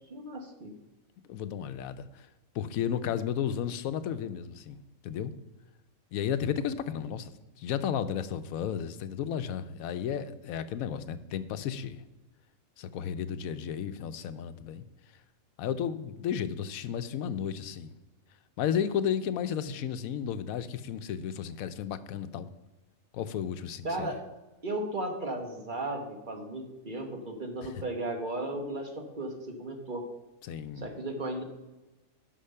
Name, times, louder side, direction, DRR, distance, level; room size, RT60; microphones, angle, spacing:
voice 1, 0.1-0.7 23.8-24.2 24.6-30.0 30.8-31.4, right 1 dB, 35° right, 3 dB, 1.4 m, -35 dB
voice 2, 1.3-2.3 2.5-4.8 5.0-5.3 6.1-12.0 12.8-14.9 15.6-17.9 18.6-22.5 23.1-24.1 27.6-27.7 30.4-30.8, left 8 dB, 90° left, 11 dB, 1.0 m, -33 dB
10.0 x 5.9 x 5.5 m, 1.1 s
omnidirectional pair, 1.4 m